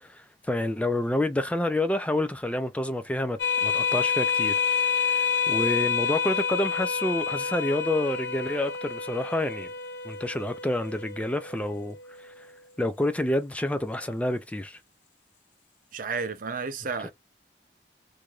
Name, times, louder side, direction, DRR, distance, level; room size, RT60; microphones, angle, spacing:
voice 1, 0.0-4.5 5.0-9.7 10.0-12.5 12.8-14.8, left 1 dB, 10° left, 0.4 m, -28 dB
sound 1, 3.4-12.4, left 6 dB, 80° left, 0.7 m, -28 dB
voice 2, 15.9-17.1, right 5 dB, 50° right, 0.5 m, -32 dB
3.1 x 2.6 x 2.3 m
head